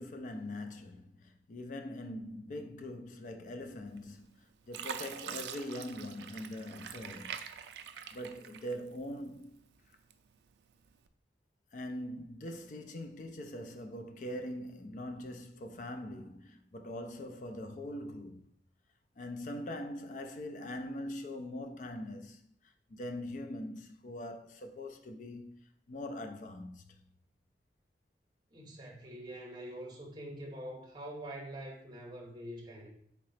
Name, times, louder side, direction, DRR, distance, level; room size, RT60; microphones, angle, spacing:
voice 1, 0.0-7.3 8.1-9.6 11.7-18.4 19.2-22.5 22.9-27.1, left 1 dB, 45° left, 0.4 m, -42 dB
Fill (with liquid), 4.0-4.3 4.7-9.1 9.6-10.4 10.9-11.1, right 8 dB, 70° right, 0.3 m, -44 dB
voice 2, 28.5-33.0, right 1 dB, 25° right, 0.8 m, -45 dB
3.7 x 2.9 x 3.2 m
head